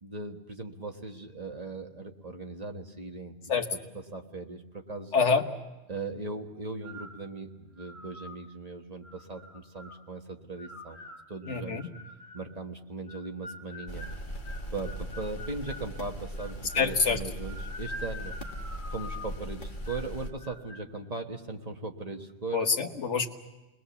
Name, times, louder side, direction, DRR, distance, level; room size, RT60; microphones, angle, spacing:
voice 1, 0.0-3.3 3.7-3.8 4.1-5.1 5.9-11.0 11.3-11.9 12.3-14.1 14.7-18.4 18.9-22.7, right 3 dB, 35° right, 3 dB, 1.5 m, -39 dB
voice 2, 5.1-5.4 11.5-11.8 16.8-17.2 22.5-23.3, left 5 dB, 85° left, 5 dB, 1.7 m, -25 dB
sound 1, 6.8-7.2 7.8-8.4 9.0-10.0 10.6-12.5 13.1-15.9 16.4-16.9 17.4-19.4 19.8-20.1 20.4-20.8, left 1 dB, 15° left, 2.3 m, -45 dB
sound 2, 13.9-20.3, equal, 45° left, 1.7 m, -39 dB
28.5 x 20.5 x 7.1 m, 1.0 s
omnidirectional pair, 1.2 m